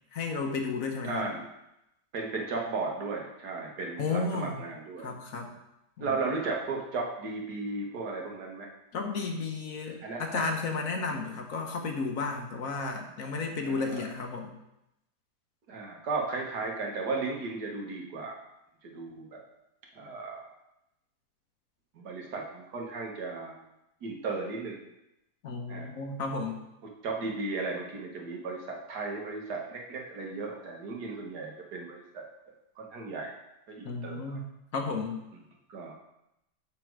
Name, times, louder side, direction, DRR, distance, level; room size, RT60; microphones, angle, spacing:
voice 1, 0.1-1.3 4.0-4.6 5.0-5.5 6.0-6.1 8.9-14.5 25.4-26.6 33.8-35.2, left 4 dB, 60° left, 3 dB, 1.3 m, -33 dB
voice 2, 1.0-1.4 2.1-5.1 6.0-8.7 10.0-10.4 13.6-14.0 15.7-18.4 18.8-19.4 20.0-20.5 22.0-23.6 24.0-24.8 25.7-25.9 27.0-32.2 32.8-33.3 33.7-34.4 35.7-35.9, right 3 dB, 75° right, 0 dB, 1.9 m, -35 dB
7.4 x 6.1 x 4.7 m, 0.87 s
omnidirectional pair, 1.7 m